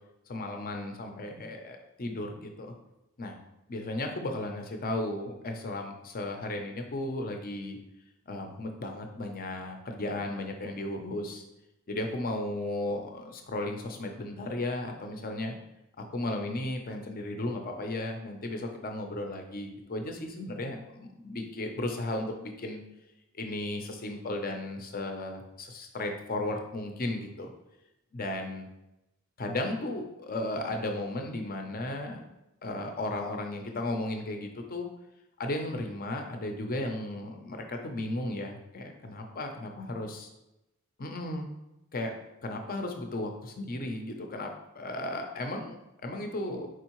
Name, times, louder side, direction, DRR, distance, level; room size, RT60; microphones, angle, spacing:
voice 1, 0.3-2.7 3.2-3.4 3.7-7.8 8.3-11.4 11.9-15.5 16.1-22.8 23.3-27.5 28.1-28.7 29.4-32.2 32.6-34.9 35.4-40.3 41.0-41.5 41.9-42.1 42.4-45.8 46.0-46.7, left 1 dB, 40° left, 4 dB, 0.6 m, -35 dB
4.8 x 3.6 x 3.0 m, 0.92 s
head